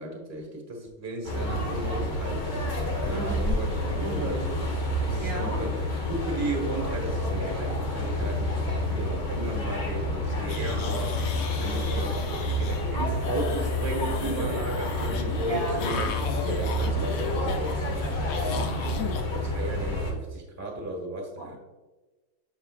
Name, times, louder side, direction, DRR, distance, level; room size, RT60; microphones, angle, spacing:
voice 1, 0.0-2.6 3.0-4.5 5.1-5.7 6.1-16.1 16.4-18.4 19.3-21.6, right 2 dB, 10° right, 1 dB, 0.9 m, -35 dB
sound 1, 1.2-20.1, left 1 dB, 55° left, 2.2 m, -29 dB
voice 2, 3.1-3.6 4.0-4.3 5.2-5.5 8.7-9.1 15.5-15.8 18.0-18.8 21.4-21.6, right 3 dB, 55° right, -3 dB, 1.0 m, -36 dB
sound 2, 10.5-12.9 13.2-19.2, left 5 dB, 75° left, 0.8 m, -36 dB
9.7 x 5.2 x 2.4 m, 1.2 s
omnidirectional pair, 2.3 m